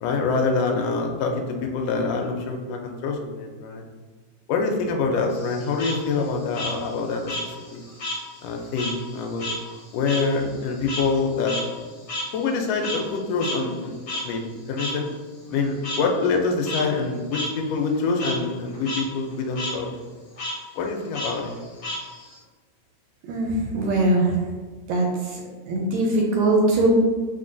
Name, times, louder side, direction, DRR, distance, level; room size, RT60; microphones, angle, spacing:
voice 1, 0.0-3.8 4.5-7.8 8.4-9.4 9.9-11.6 12.3-13.9 14.2-15.1 15.5-19.9 20.8-21.5, left 4 dB, 80° left, 2 dB, 1.5 m, -25 dB
Frog, 5.3-8.2 8.5-13.1 13.4-13.5 14.1-14.2 14.8-14.9 15.8-16.0 16.5-16.8 17.3-17.5 17.8-18.3 18.7-19.0 19.3-19.7 20.4-20.5 21.1-22.4, left 1 dB, 50° left, 0.9 m, -32 dB
voice 2, 23.2-24.5 24.9-25.4 25.7-26.9, right 2 dB, 75° right, 0 dB, 1.7 m, -21 dB
4.2 x 3.8 x 2.5 m, 1.4 s
omnidirectional pair, 3.4 m